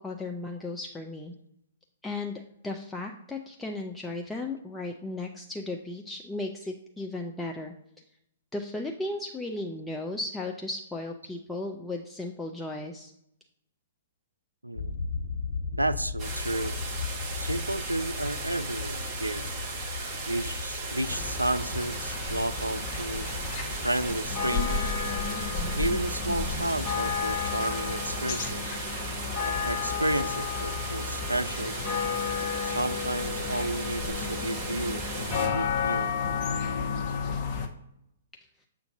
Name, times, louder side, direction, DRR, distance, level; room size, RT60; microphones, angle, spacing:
voice 1, 0.0-1.3 2.0-7.7 8.5-13.1, left 2 dB, 5° left, 0 dB, 0.4 m, -35 dB
sound 1, 14.7-28.4, left 4 dB, 60° left, 1.3 m, -38 dB
voice 2, 15.7-16.7 17.4-19.5 20.3-23.3 23.8-24.9 25.7-28.8 29.5-31.8 32.6-36.1, right 1 dB, 85° right, 13 dB, 0.3 m, -32 dB
sound 2, 16.2-35.5, right 3 dB, 25° right, 1.4 m, -37 dB
sound 3, 21.1-37.7, left 5 dB, 30° left, 0.8 m, -32 dB
6.9 x 2.5 x 5.5 m, 0.79 s
figure-of-eight pair, 115°, 0 cm